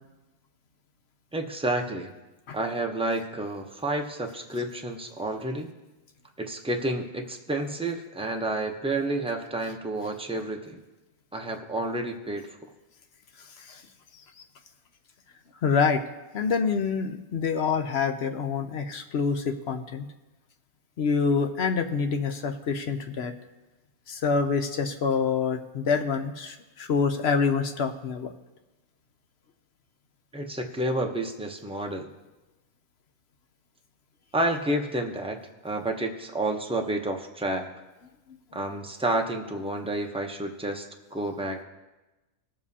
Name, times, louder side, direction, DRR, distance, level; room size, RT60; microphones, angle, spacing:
voice 1, 1.3-2.1 2.5-5.7 6.4-10.8 11.3-12.5 30.3-32.1 34.3-37.7 38.5-41.6, right 1 dB, 5° right, 2 dB, 0.5 m, -30 dB
voice 2, 15.6-16.0 16.3-20.0 21.0-23.3 24.1-28.3, left 5 dB, 60° left, 6 dB, 0.8 m, -26 dB
19.5 x 7.2 x 2.8 m, 1.1 s
omnidirectional pair, 1.5 m